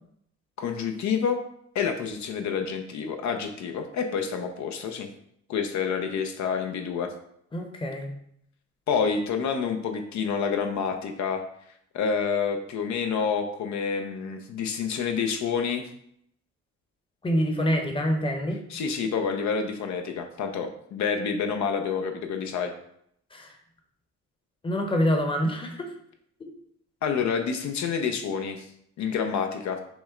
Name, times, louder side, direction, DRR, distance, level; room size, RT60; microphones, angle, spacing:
voice 1, 0.6-1.4 1.7-5.1 5.5-7.1 8.9-11.4 11.9-15.9 18.7-22.7 27.0-28.7 29.0-29.8, left 6 dB, 70° left, 5 dB, 0.6 m, -28 dB
voice 2, 7.5-8.1 17.2-18.6 23.3-23.6 24.6-25.9 26.4-26.5, equal, 15° left, 3 dB, 0.8 m, -26 dB
6.0 x 2.1 x 3.6 m, 0.70 s
cardioid pair, 90°, 30 cm